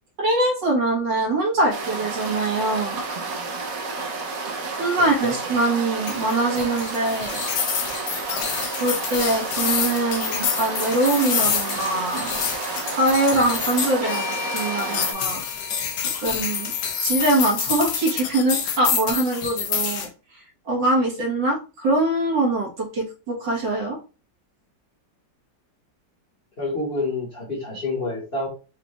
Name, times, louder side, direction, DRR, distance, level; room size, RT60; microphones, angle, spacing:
voice 1, 0.2-3.0 4.8-7.4 8.8-12.3 12.9-15.4 15.7-15.9 16.2-16.7 17.0-24.0, right 2 dB, 75° right, -2 dB, 2.0 m, -23 dB
sound 1, 1.7-15.1, right 4 dB, 60° right, 1.1 m, -31 dB
voice 2, 5.0-5.3 26.6-28.5, left 2 dB, 35° left, -3 dB, 1.3 m, -28 dB
sound 2, 6.1-20.1, left 7 dB, 75° left, 1.3 m, -27 dB
sound 3, 14.0-18.2, left 7 dB, 60° left, 1.8 m, -36 dB
5.0 x 2.4 x 3.0 m, 0.33 s
omnidirectional pair, 2.0 m